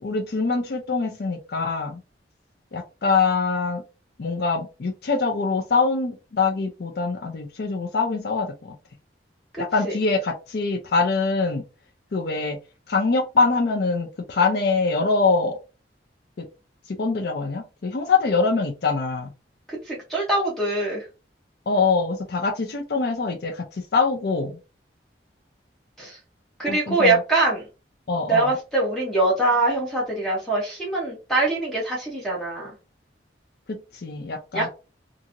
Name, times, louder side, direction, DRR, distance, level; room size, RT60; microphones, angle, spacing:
voice 1, 0.0-2.0 2.7-3.8 4.2-8.7 9.6-11.6 12.1-12.6 12.9-15.6 16.4-16.5 16.9-19.3 21.7-24.6 26.7-27.2 28.1-28.5 33.7-34.7, left 4 dB, 60° left, 4 dB, 0.5 m, -24 dB
voice 2, 19.7-21.1 26.0-26.2 26.6-27.6 28.3-32.7 34.5-34.7, right 2 dB, ahead, -4 dB, 0.7 m, -23 dB
2.8 x 2.5 x 2.5 m, 0.30 s
head